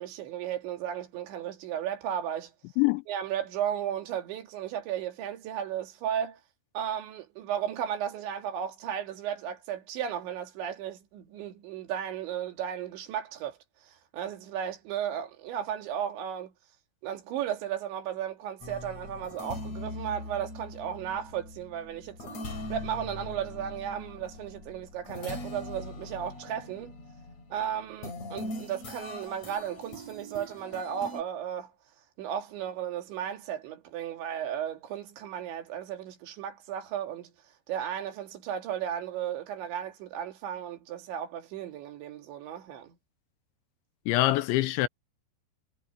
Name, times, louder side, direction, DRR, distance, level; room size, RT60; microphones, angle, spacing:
voice 1, 0.0-2.5 3.1-6.4 6.7-13.6 13.8-16.5 17.0-22.3 22.7-27.0 27.5-31.7 32.2-37.3 37.7-43.0, right 9 dB, 70° right, 4.6 m, -35 dB
sound 1, 18.6-31.2, left 2 dB, 35° left, 5.6 m, -41 dB
voice 2, 44.1-44.9, left 18 dB, 85° left, 3.0 m, -24 dB
omnidirectional pair, 5.5 m